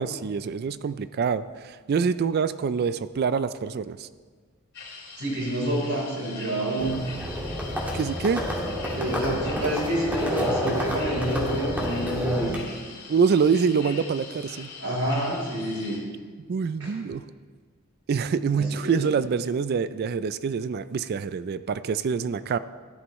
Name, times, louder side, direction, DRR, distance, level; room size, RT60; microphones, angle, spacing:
voice 1, 0.0-4.1 7.9-8.4 13.1-14.7 16.5-17.2 18.1-22.6, right 6 dB, 45° right, 14 dB, 0.3 m, -25 dB
sound 1, 4.7-16.0, left 4 dB, 50° left, 3.0 m, -42 dB
voice 2, 5.2-7.1 8.9-12.6 14.8-16.0 16.8-16.9 18.6-19.0, right 1 dB, 70° right, -3 dB, 3.9 m, -28 dB
Livestock farm animals working animals, 6.8-12.6, equal, 10° right, 1.8 m, -29 dB
13.5 x 11.0 x 3.1 m, 1.5 s
head